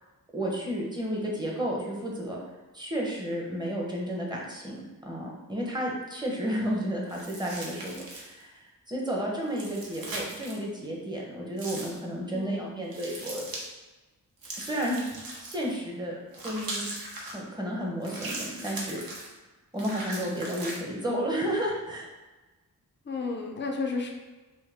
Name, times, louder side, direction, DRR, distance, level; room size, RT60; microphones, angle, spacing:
voice 1, 0.3-2.4 2.7-13.4 14.6-16.9 17.2-19.3 19.7-22.1, equal, 10° right, -3 dB, 1.0 m, -32 dB
sound 1, 7.1-8.4 9.5-10.6 11.6-12.0 12.9-13.7 14.4-15.8 16.3-17.3 18.0-19.3 19.8-20.8, right 2 dB, 70° right, 1.0 m, -39 dB
voice 2, 12.3-12.7 23.1-24.1, left 4 dB, 30° left, 1 dB, 0.6 m, -32 dB
5.4 x 2.2 x 3.5 m, 1.2 s
wide cardioid pair, 110°, 35 cm